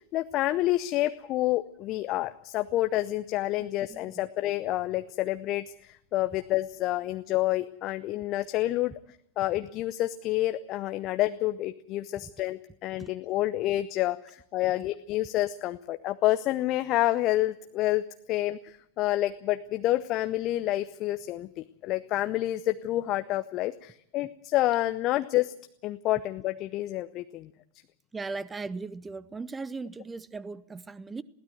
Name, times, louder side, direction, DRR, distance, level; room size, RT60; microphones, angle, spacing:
voice 1, 0.1-8.9 9.4-25.5 25.8-27.5, left 15 dB, 35° left, 0.7 m, -28 dB
voice 2, 3.6-4.2 12.2-12.3 28.1-31.2, right 4 dB, 15° right, 0.8 m, -38 dB
21.5 x 16.5 x 7.9 m
figure-of-eight pair, 90°, 0 cm